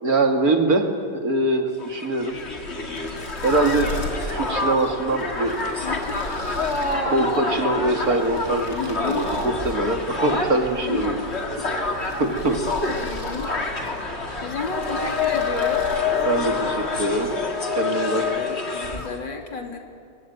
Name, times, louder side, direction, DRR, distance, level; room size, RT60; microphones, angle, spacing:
voice 1, 0.0-2.4 3.4-3.9 4.3-5.6 7.1-11.1 12.2-12.6 16.2-17.3 17.8-18.3, right 2 dB, 55° right, 5 dB, 2.8 m, -23 dB
Crowd, 1.8-19.2, left 3 dB, 35° left, 2.6 m, -27 dB
sound 1, 2.2-17.7, left 1 dB, 65° left, 4.9 m, -38 dB
voice 2, 5.8-6.2 8.7-9.3 10.8-11.7 12.9-13.5 14.4-15.9 18.4-19.8, left 5 dB, 90° left, 3 dB, 3.6 m, -32 dB
25.5 x 23.5 x 9.4 m, 2.3 s
omnidirectional pair, 1.9 m